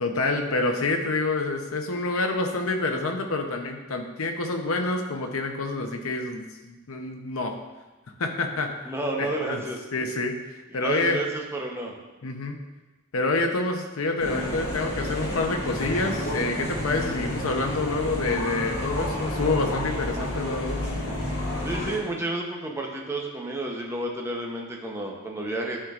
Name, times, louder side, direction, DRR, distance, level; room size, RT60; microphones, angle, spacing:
voice 1, 0.0-7.5 8.2-8.8 9.2-9.6 9.9-11.2 12.2-12.6 13.1-20.8, left 2 dB, 70° left, 4 dB, 0.8 m, -27 dB
voice 2, 8.8-9.8 10.8-11.9 21.6-25.8, right 2 dB, 10° right, 0 dB, 0.8 m, -31 dB
sound 1, 14.2-22.0, left 1 dB, 45° left, 2.2 m, -30 dB
11.5 x 4.4 x 2.5 m, 1.2 s
head